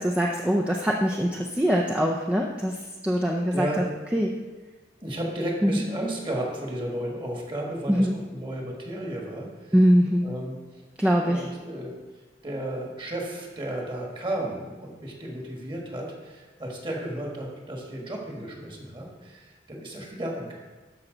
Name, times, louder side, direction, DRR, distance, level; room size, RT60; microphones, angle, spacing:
voice 1, 0.0-2.8 3.0-3.7 4.1-4.3 5.6-5.8 7.9-8.2 9.7-10.3 11.0-11.4, equal, 5° right, -1 dB, 0.5 m, -22 dB
voice 2, 3.5-3.8 5.0-9.7 10.2-10.6 11.0-11.9 12.4-20.5, right 1 dB, 25° right, -1 dB, 1.6 m, -33 dB
13.0 x 5.5 x 3.9 m, 1.3 s
head